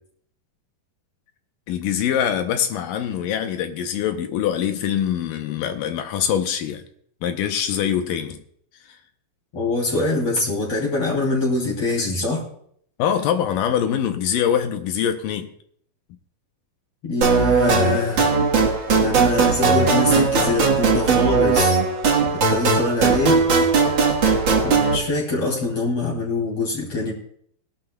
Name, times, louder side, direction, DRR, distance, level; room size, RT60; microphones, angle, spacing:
voice 1, 1.7-6.8 7.2-8.4 13.0-15.5, left 9 dB, 75° left, 6 dB, 2.3 m, -23 dB
voice 2, 9.5-12.4 17.0-18.2 19.0-21.8 22.3-23.4 24.6-27.1, left 3 dB, 45° left, -3 dB, 3.7 m, -24 dB
sound 1, 17.2-24.9, right 5 dB, 55° right, 1.4 m, -18 dB
22.0 x 11.5 x 2.3 m, 0.65 s
omnidirectional pair, 4.1 m